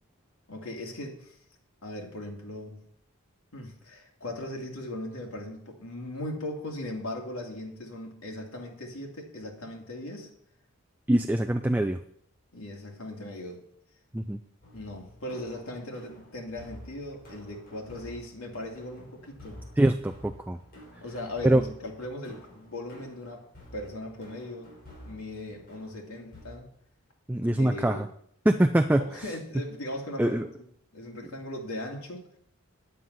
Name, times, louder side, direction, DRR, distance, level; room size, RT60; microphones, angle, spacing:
voice 1, 0.5-1.4 1.8-2.8 3.5-10.3 12.5-13.6 14.7-19.6 21.0-23.4 23.7-24.7 25.0-26.7 27.6-28.1 29.0-30.6 30.9-32.3, left 1 dB, 85° left, 0 dB, 2.6 m, -38 dB
voice 2, 11.1-12.0 14.1-14.4 19.8-20.6 21.4-21.6 27.3-28.1 28.5-29.0 30.2-30.5, right 1 dB, 10° right, 6 dB, 0.3 m, -23 dB
sound 1, 14.6-26.4, equal, 45° left, 5.4 m, -50 dB
9.8 x 9.2 x 5.6 m, 0.68 s
head